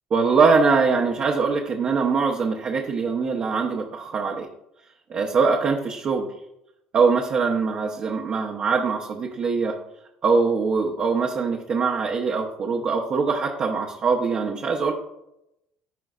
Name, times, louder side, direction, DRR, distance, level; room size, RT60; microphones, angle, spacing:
voice 1, 0.1-4.5 5.1-6.3 6.9-9.8 10.2-14.9, right 4 dB, 50° right, 0 dB, 1.0 m, -22 dB
14.0 x 5.1 x 2.5 m, 0.85 s
hypercardioid pair, 65°, 3 cm